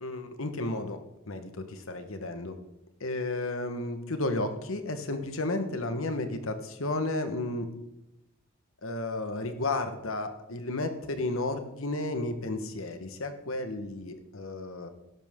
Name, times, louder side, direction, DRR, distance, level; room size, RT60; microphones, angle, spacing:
voice 1, 0.0-1.0 1.3-2.5 3.0-7.7 8.8-14.9, left 2 dB, 65° left, 8 dB, 1.3 m, -33 dB
12.0 x 11.5 x 3.7 m, 0.89 s
head